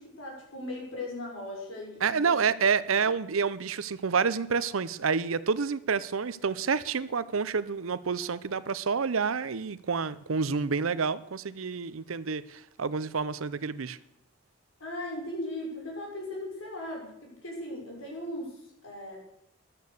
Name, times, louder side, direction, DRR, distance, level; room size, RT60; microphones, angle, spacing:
voice 1, 0.0-3.0 14.8-19.2, left 1 dB, 85° left, -1 dB, 5.9 m, -38 dB
voice 2, 2.0-14.0, right 5 dB, 85° right, 16 dB, 0.7 m, -28 dB
13.5 x 11.5 x 6.6 m, 0.78 s
head